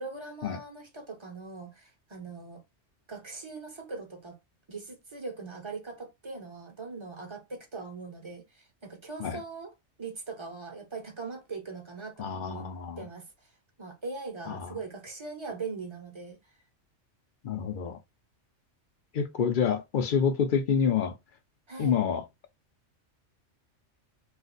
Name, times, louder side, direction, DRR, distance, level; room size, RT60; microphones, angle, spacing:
voice 1, 0.0-2.6 3.1-4.4 4.7-9.7 10.0-12.7 13.0-13.5 13.8-16.4 21.7-22.0, right 4 dB, 30° right, 0.7 m, -41 dB
voice 2, 12.2-13.0 14.5-14.8 17.4-18.0 19.1-21.2 21.8-22.3, left 7 dB, 55° left, 0.6 m, -27 dB
2.5 x 2.4 x 3.9 m
omnidirectional pair, 1.2 m